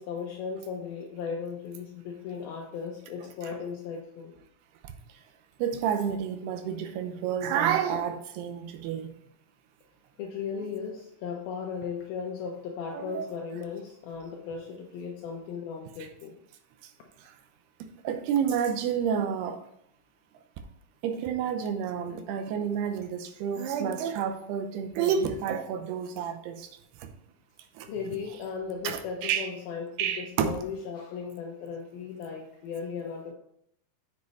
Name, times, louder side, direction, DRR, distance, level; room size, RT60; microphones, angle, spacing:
voice 1, 0.0-4.3 10.2-16.4 27.9-33.3, left 6 dB, 75° left, 2.5 m, -36 dB
voice 2, 5.6-9.1 12.9-13.3 17.2-17.3 17.8-19.6 21.0-26.7 27.0-27.1 27.8-27.9 28.8-29.5 30.0-30.6, right 8 dB, 85° right, 2.8 m, -29 dB
7.2 x 6.5 x 4.1 m
omnidirectional pair, 4.6 m